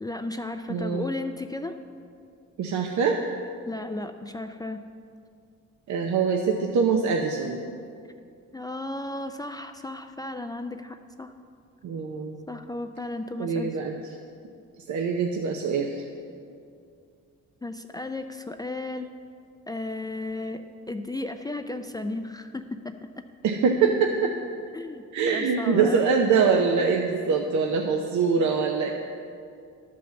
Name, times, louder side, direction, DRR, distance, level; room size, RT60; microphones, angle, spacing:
voice 1, 0.0-1.8 3.7-4.8 8.5-11.3 12.5-13.7 17.6-19.1 19.7-22.9 24.7-26.0, left 2 dB, 15° left, 6 dB, 0.4 m, -34 dB
voice 2, 0.7-1.0 2.6-3.2 5.9-7.6 11.8-12.4 13.4-13.9 14.9-16.0 23.4-24.3 25.1-28.9, right 5 dB, 70° right, 2 dB, 0.8 m, -24 dB
11.5 x 5.1 x 7.0 m, 2.4 s
cardioid pair, 90°, 30 cm